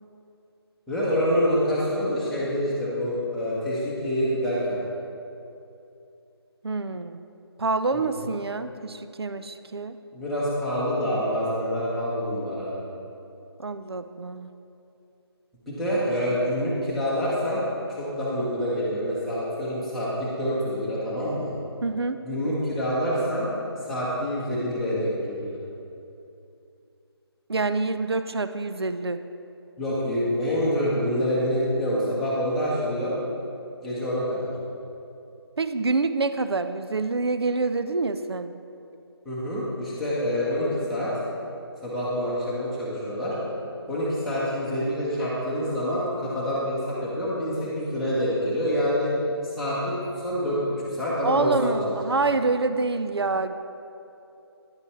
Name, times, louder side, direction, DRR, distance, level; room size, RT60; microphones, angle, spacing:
voice 1, 0.9-4.8 7.9-8.3 10.1-12.7 15.7-17.6 17.9-21.5 22.2-23.5 23.8-25.6 29.8-33.2 33.8-34.5 39.2-41.1 41.8-43.4 43.9-49.1 49.4-50.6 50.9-52.0, equal, ahead, -11 dB, 1.1 m, -26 dB
voice 2, 6.6-7.2 7.6-10.0 13.6-14.5 21.8-22.2 27.5-29.2 35.6-38.5 51.2-53.6, right 3 dB, 70° right, 10 dB, 0.5 m, -26 dB
10.5 x 8.1 x 3.2 m, 2.7 s
figure-of-eight pair, 150°, 14 cm